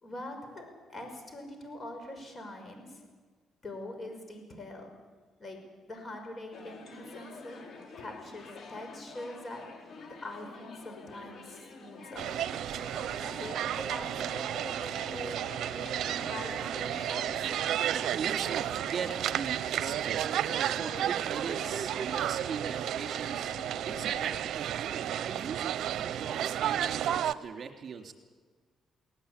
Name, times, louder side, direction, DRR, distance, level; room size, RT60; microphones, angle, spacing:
voice 1, 0.0-3.0 3.6-4.9 5.4-5.6 5.9-7.6 8.0-9.6 10.2-12.3 12.7-12.9 13.4-15.4 15.7-17.5, left 1 dB, 35° left, 5 dB, 5.6 m, -43 dB
sound 1, 6.5-24.4, left 4 dB, 55° left, 3.9 m, -48 dB
sound 2, 12.2-27.3, right 10 dB, 75° right, 0.8 m, -32 dB
voice 2, 17.8-20.3 20.7-23.5 23.8-28.1, right 6 dB, 50° right, 4 dB, 3.5 m, -40 dB
21.0 x 19.0 x 8.6 m, 1.4 s
cardioid pair, 90°, 0 cm